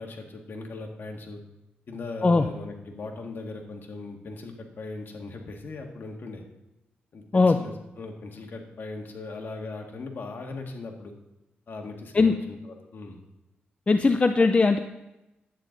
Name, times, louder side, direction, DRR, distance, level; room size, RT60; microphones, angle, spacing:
voice 1, 0.0-1.4 1.9-6.4 7.1-11.1 11.7-13.2, left 3 dB, 60° left, 2 dB, 1.8 m, -39 dB
voice 2, 13.9-14.8, left 3 dB, 30° left, 7 dB, 0.5 m, -19 dB
11.0 x 9.1 x 3.9 m, 0.95 s
cardioid pair, 80°, 4 cm